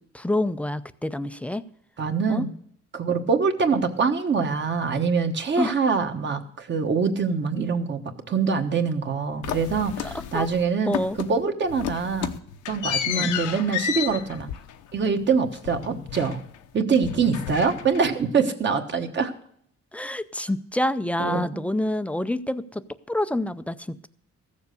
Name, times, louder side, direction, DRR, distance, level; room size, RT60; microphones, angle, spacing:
voice 1, 0.0-1.6 2.3-2.4 5.6-5.7 10.3-10.5 10.8-11.2 13.1-13.6 19.9-22.8 23.1-24.1, left 1 dB, 5° left, 13 dB, 0.4 m, -27 dB
voice 2, 2.0-2.5 2.9-8.0 8.3-12.3 12.7-14.5 14.9-16.4 16.7-19.3 21.2-21.5, right 5 dB, 40° right, 5 dB, 1.3 m, -24 dB
sound 1, 9.4-10.6 10.9-11.4 11.7-16.6 16.9-18.2, left 9 dB, 90° left, 1.0 m, -32 dB
14.5 x 7.2 x 6.8 m, 0.64 s
cardioid pair, 140°, 30 cm